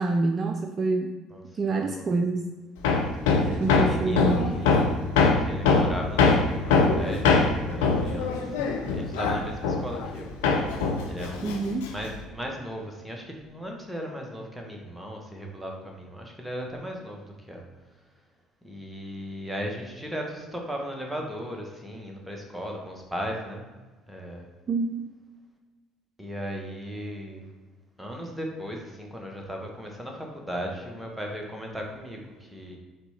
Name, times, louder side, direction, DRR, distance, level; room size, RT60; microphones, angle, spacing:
voice 1, 0.0-1.1 1.6-2.5 3.5-4.6 11.4-11.9 24.7-24.9, right 3 dB, 35° right, 4 dB, 0.3 m, -27 dB
voice 2, 1.7-2.1 3.5-4.9 5.4-8.3 8.6-10.3 11.1-11.6 11.9-17.6 18.6-23.7 24.1-24.5 26.2-27.4 28.0-32.8, equal, 5° right, 0 dB, 1.0 m, -37 dB
Hammer, 2.8-10.2 10.4-12.2, left 4 dB, 70° left, 0.5 m, -22 dB
4.4 x 4.0 x 2.8 m, 1.3 s
figure-of-eight pair, 55°, 0 cm